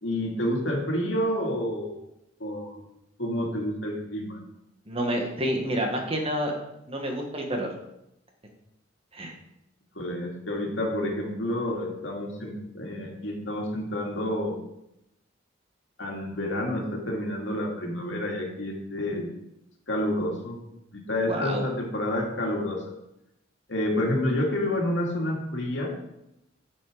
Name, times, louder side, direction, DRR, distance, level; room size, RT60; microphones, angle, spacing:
voice 1, 0.0-2.0 2.4-2.8 3.2-4.4 10.0-14.6 16.0-19.3 19.9-20.6 20.9-22.8 23.7-25.9, left 1 dB, 75° left, 0 dB, 2.3 m, -29 dB
voice 2, 4.9-6.6 6.9-7.7 9.1-9.3 21.3-21.6, equal, 30° right, 2 dB, 1.6 m, -28 dB
8.6 x 7.6 x 5.0 m, 0.85 s
head